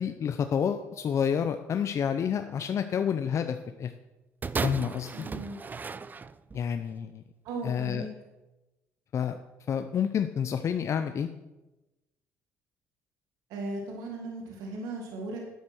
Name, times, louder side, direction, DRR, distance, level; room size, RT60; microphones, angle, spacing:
voice 1, 0.0-3.9 4.6-5.1 6.5-7.2 7.6-8.0 9.1-9.4 9.7-11.3, left 7 dB, 50° left, 8 dB, 0.7 m, -29 dB
sound 1, 4.4-6.7 7.5-7.6, right 5 dB, 30° right, 0.6 m, -35 dB
voice 2, 5.1-5.6 7.4-8.1 13.5-15.4, right 2 dB, 80° right, 0 dB, 1.9 m, -37 dB
9.5 x 8.1 x 6.1 m, 1.0 s
supercardioid pair, 75°, 6 cm